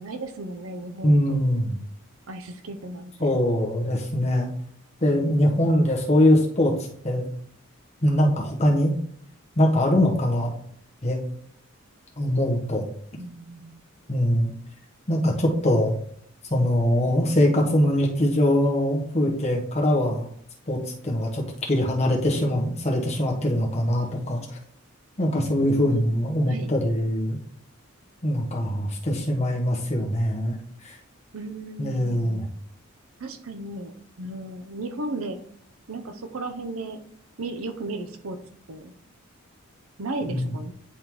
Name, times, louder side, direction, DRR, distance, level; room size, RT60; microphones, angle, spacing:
voice 1, 0.0-1.4 2.3-3.3 13.2-13.8 15.3-15.4 25.8-26.7 31.3-32.5 33.2-35.4 35.9-37.0 37.4-38.4 38.7-38.9 40.0-40.7, right 2 dB, 80° right, 7 dB, 0.7 m, -35 dB
voice 2, 1.0-1.8 3.2-4.5 5.0-6.7 7.0-7.3 8.0-8.9 9.6-10.5 11.0-11.2 12.2-12.8 14.1-14.5 15.1-16.0 16.5-20.3 20.7-20.8 21.0-24.6 25.2-27.4 28.2-30.6 30.8-31.0 31.8-32.5 40.3-40.5, left 1 dB, 30° left, -1 dB, 1.1 m, -22 dB
9.7 x 3.6 x 3.0 m, 0.64 s
head